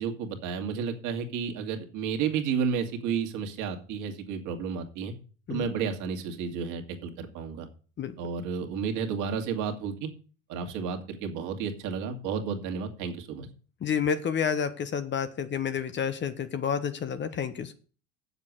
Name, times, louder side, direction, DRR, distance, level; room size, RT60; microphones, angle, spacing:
voice 1, 0.0-5.1 5.5-7.7 8.2-10.1 10.5-13.5, right 6 dB, 50° right, 5 dB, 2.2 m, -32 dB
voice 2, 13.8-17.7, left 7 dB, 30° left, 11 dB, 1.1 m, -29 dB
7.4 x 7.0 x 8.0 m, 0.39 s
hypercardioid pair, 90°, 38 cm